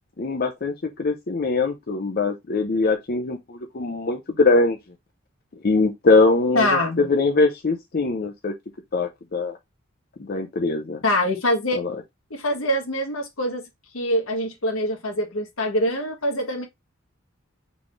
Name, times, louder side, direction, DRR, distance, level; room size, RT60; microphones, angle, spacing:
voice 1, 0.2-4.8 5.6-8.5 8.9-9.6 10.2-11.0 11.7-12.0, left 3 dB, 45° left, 0.6 m, -22 dB
voice 2, 6.5-7.1 11.0-11.8 12.3-13.6 13.9-16.7, left 1 dB, 80° left, 1.4 m, -24 dB
4.1 x 3.6 x 3.1 m
head